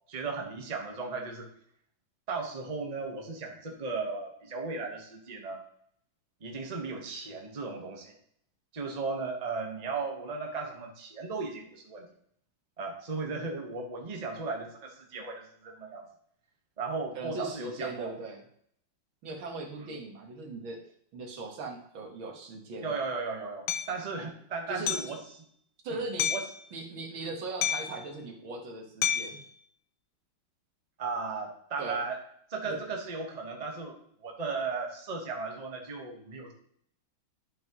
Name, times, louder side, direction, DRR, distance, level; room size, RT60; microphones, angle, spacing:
voice 1, 0.1-1.5 2.3-5.6 6.4-8.1 8.7-12.1 12.8-16.0 16.8-18.1 22.8-25.2 25.9-26.0 26.3-26.4 31.0-32.2 32.5-36.5, right 4 dB, 25° right, 1 dB, 1.1 m, -36 dB
voice 2, 17.2-18.4 19.2-20.8 21.1-22.9 24.7-24.9 25.8-26.3 26.7-29.4 31.8-32.0 32.6-32.8, right 3 dB, 70° right, 1 dB, 2.2 m, -39 dB
Hammer, 23.7-23.9 24.9-25.2 26.2-26.5 27.6-28.0 29.0-29.4, left 9 dB, 80° left, 1.6 m, -29 dB
11.0 x 6.0 x 3.0 m, 0.66 s
omnidirectional pair, 2.3 m